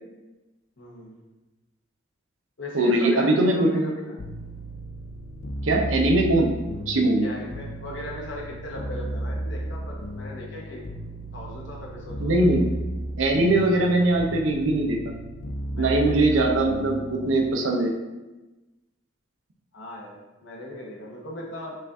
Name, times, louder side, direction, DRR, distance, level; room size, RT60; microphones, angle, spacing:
voice 1, 0.8-1.2 2.6-4.2 7.2-10.8 11.3-12.8 15.7-16.4 19.7-21.8, left 1 dB, 65° left, -2 dB, 1.0 m, -37 dB
voice 2, 2.7-3.8 5.6-6.5 6.9-7.3 12.2-12.6 13.2-15.1 15.8-18.0, right 2 dB, 80° right, 1 dB, 0.7 m, -21 dB
sound 1, 4.2-17.5, right 1 dB, 85° left, 0.5 m, -34 dB
5.5 x 2.6 x 3.5 m, 1.1 s
head